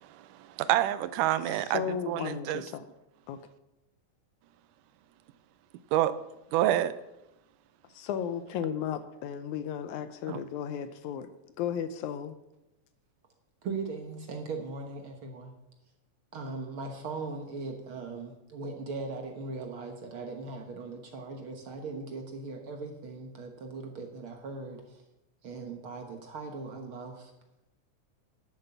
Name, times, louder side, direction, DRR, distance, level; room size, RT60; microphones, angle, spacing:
voice 1, 0.2-2.6 5.9-6.1 6.5-6.9 10.3-10.4, right 13 dB, 85° right, 2.2 m, -28 dB
voice 2, 1.5-2.9 3.3-3.4 7.9-11.3 11.6-12.4, left 8 dB, 75° left, 1.9 m, -34 dB
voice 3, 13.6-15.6 16.3-25.0 25.4-27.3, right 3 dB, 55° right, 1.6 m, -39 dB
11.0 x 7.7 x 7.0 m
omnidirectional pair, 3.7 m